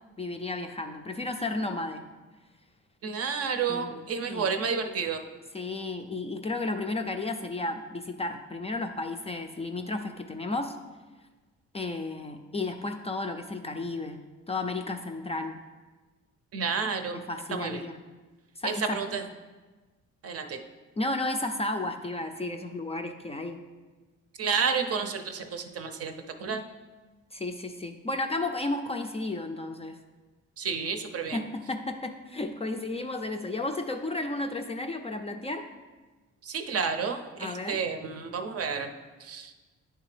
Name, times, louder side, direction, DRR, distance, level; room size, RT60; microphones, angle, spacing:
voice 1, 0.2-2.1 3.7-4.5 5.5-10.8 11.7-14.2 14.5-15.6 17.1-18.0 18.6-19.0 21.0-23.6 27.3-30.0 31.3-35.6 37.4-37.8, left 2 dB, 20° left, 5 dB, 0.4 m, -33 dB
voice 2, 3.0-5.3 16.5-17.2 17.5-17.8 18.6-19.2 20.2-20.6 24.4-26.6 30.6-31.4 36.4-38.9 39.2-39.5, right 5 dB, 50° right, 6 dB, 0.6 m, -30 dB
9.9 x 3.3 x 3.3 m, 1.3 s
cardioid pair, 90°, 30 cm